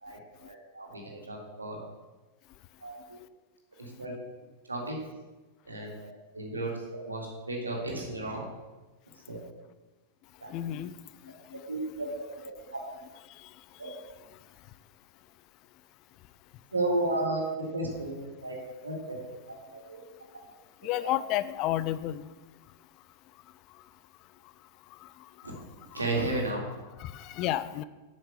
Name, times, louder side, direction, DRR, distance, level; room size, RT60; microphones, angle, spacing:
voice 1, 0.0-1.8 2.8-3.2 3.8-4.2 4.7-5.0 5.7-8.4 9.3-9.4 10.4-10.5 11.7-12.1 12.4-12.8 13.8-13.9 16.7-19.2 19.7-20.0 20.8-21.1 25.4-25.5 25.9-26.7, right 2 dB, 80° right, -1 dB, 2.3 m, -34 dB
voice 2, 10.5-10.9 11.5-11.6 20.8-22.2 27.0-27.8, left 13 dB, 40° left, 14 dB, 0.4 m, -30 dB
7.9 x 6.4 x 6.6 m, 1.2 s
figure-of-eight pair, 90°, 0 cm